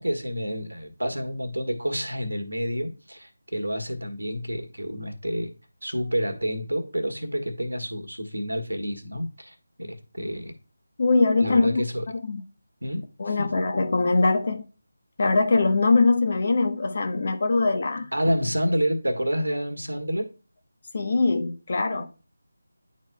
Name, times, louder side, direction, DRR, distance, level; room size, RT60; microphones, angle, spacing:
voice 1, 0.0-5.5 5.8-10.5 11.4-12.0 12.8-13.5 18.1-20.3, equal, 85° right, 1.5 m, -29 dB
voice 2, 11.0-11.8 12.2-12.4 13.2-14.6 15.2-18.1 20.9-22.1, left 3 dB, 45° left, 1.0 m, -22 dB
10.5 x 4.3 x 2.3 m
figure-of-eight pair, 160°, 0 cm